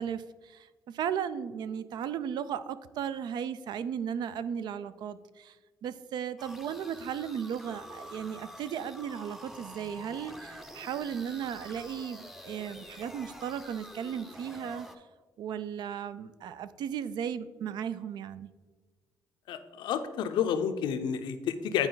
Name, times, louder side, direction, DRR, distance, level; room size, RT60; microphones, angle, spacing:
voice 1, 0.0-5.6 5.8-14.9 15.4-18.5, right 8 dB, 70° right, 14 dB, 0.4 m, -36 dB
sound 1, 6.4-15.0, equal, 5° right, 0.6 m, -47 dB
voice 2, 19.5-21.9, left 8 dB, 90° left, 9 dB, 0.6 m, -30 dB
9.7 x 4.4 x 3.9 m, 1.3 s
cardioid pair, 110°, 8 cm